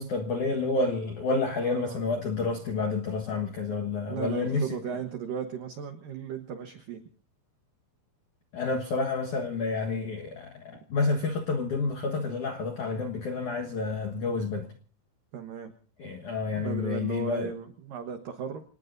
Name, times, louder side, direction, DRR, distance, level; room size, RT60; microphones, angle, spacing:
voice 1, 0.0-4.8 8.5-14.7 16.0-17.5, left 3 dB, 70° left, 3 dB, 1.8 m, -29 dB
voice 2, 1.6-2.0 4.1-7.0 15.3-15.7 16.5-18.6, right 7 dB, 80° right, 7 dB, 1.9 m, -36 dB
28.0 x 19.0 x 2.7 m, 0.43 s
omnidirectional pair, 6.0 m